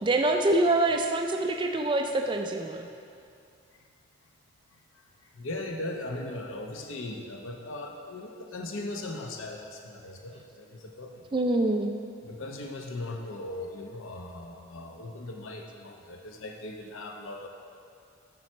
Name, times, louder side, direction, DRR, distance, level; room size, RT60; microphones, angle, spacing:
voice 1, 0.0-2.9 11.3-11.9, right 2 dB, 25° right, 4 dB, 0.3 m, -25 dB
voice 2, 5.2-11.3 12.2-17.5, left 2 dB, 75° left, 2 dB, 0.8 m, -38 dB
7.2 x 6.1 x 4.4 m, 2.5 s
head